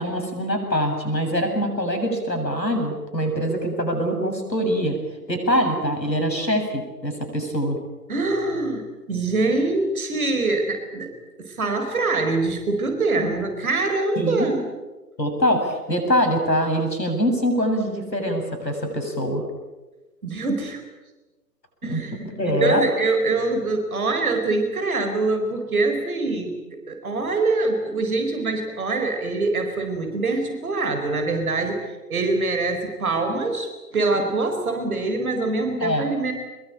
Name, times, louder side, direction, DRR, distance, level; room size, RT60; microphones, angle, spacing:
voice 1, 0.0-5.0 5.3-7.8 14.2-14.5 15.2-19.4 21.8-22.8 35.8-36.1, equal, 85° left, 4 dB, 7.9 m, -24 dB
voice 2, 8.1-11.1 11.4-14.6 20.2-20.8 21.8-22.2 22.6-36.3, right 3 dB, 60° right, 6 dB, 4.5 m, -24 dB
24.0 x 22.0 x 9.1 m, 1.2 s
figure-of-eight pair, 130°, 49 cm